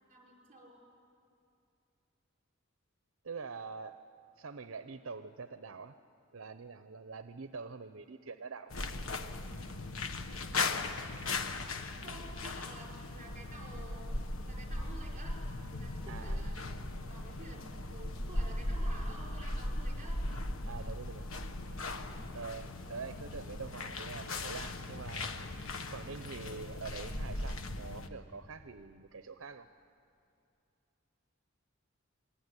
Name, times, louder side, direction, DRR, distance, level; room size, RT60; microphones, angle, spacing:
voice 1, 0.1-0.9 12.0-14.1 14.4-15.4 15.8-16.7 17.0-20.2 22.8-23.3, right 1 dB, 35° right, -1 dB, 6.0 m, -51 dB
voice 2, 3.2-4.0 4.4-6.0 6.3-8.9 16.1-16.5 20.6-21.3 22.3-25.4 25.9-29.7, right 4 dB, 75° right, 10 dB, 0.7 m, -45 dB
sound 1, 8.7-28.1, left 2 dB, 85° left, 1.4 m, -38 dB
27.0 x 21.0 x 9.8 m, 2.6 s
head